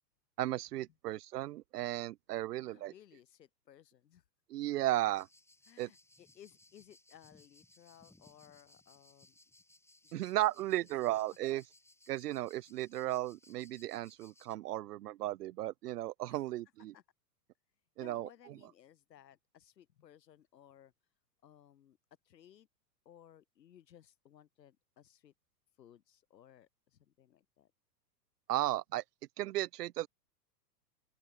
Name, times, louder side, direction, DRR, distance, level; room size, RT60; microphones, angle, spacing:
voice 1, 0.4-2.9 4.5-5.3 5.8-5.9 10.1-11.6 12.1-16.9 18.0-18.3 28.5-29.0 29.4-30.1, right 15 dB, 65° right, 1.0 m, -35 dB
voice 2, 2.6-4.2 5.7-9.4 10.0-10.9 11.5-11.6 16.3-16.4 16.9-17.0 18.0-20.9 21.4-22.0 22.2-22.7 23.0-25.3 25.8-27.7, left 10 dB, 75° left, 4.8 m, -60 dB
sound 1, 5.1-14.6, left 2 dB, 5° left, 5.2 m, -64 dB
open air
hypercardioid pair, 115°, 50 cm